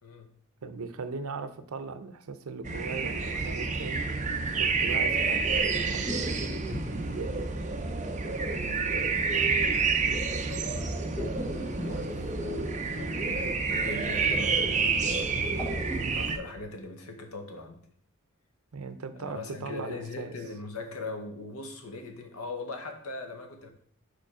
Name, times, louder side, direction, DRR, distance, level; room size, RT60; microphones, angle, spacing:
voice 1, 0.0-0.4 7.6-7.8 8.1-15.7 16.1-17.8 19.1-23.7, left 3 dB, 75° left, 4 dB, 1.1 m, -41 dB
voice 2, 0.6-4.1 4.6-6.1 6.9-7.4 14.2-14.5 15.9-16.3 18.7-20.3, right 4 dB, 75° right, 10 dB, 0.6 m, -39 dB
sound 1, 2.6-16.4, right 4 dB, 35° right, 0.6 m, -29 dB
sound 2, 5.7-8.1 10.8-12.8 15.2-16.6, equal, 10° left, 1.0 m, -39 dB
5.1 x 4.4 x 4.8 m, 0.62 s
head